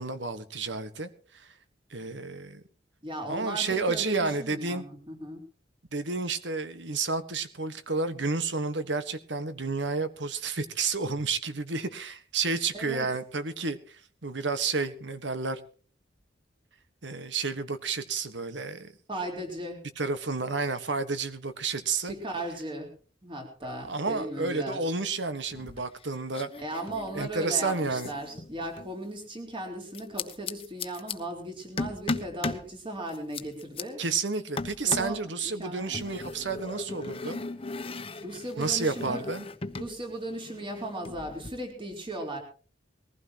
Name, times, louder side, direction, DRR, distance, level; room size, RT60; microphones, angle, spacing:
voice 1, 0.0-1.5 1.9-2.6 3.3-4.8 5.9-15.6 17.0-18.9 20.0-22.1 23.7-26.5 27.1-28.1 34.0-37.4 38.6-39.4, right 4 dB, 80° right, 11 dB, 1.5 m, -31 dB
voice 2, 3.0-5.4 12.7-13.1 19.1-19.9 22.0-22.9 23.2-24.8 26.6-34.0 34.8-36.0 38.2-39.2 39.7-42.4, right 1 dB, 30° right, 3 dB, 4.0 m, -37 dB
sound 1, 25.5-26.1 26.3-28.9 29.9-31.2 31.8-32.7 33.1-33.8 34.6-35.2 35.9-39.9 40.2-41.5, left 3 dB, 30° left, 1.0 m, -37 dB
21.5 x 15.5 x 3.0 m, 0.39 s
head